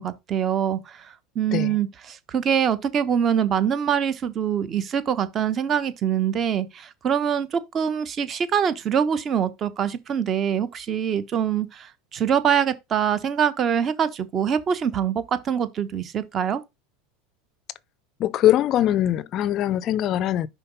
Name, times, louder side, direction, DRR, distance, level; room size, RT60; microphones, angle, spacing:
voice 1, 0.0-16.6, right 8 dB, 35° right, 1.0 m, -24 dB
voice 2, 18.2-20.5, left 12 dB, 45° left, 0.4 m, -22 dB
5.7 x 4.0 x 5.2 m
supercardioid pair, 120°, 0 cm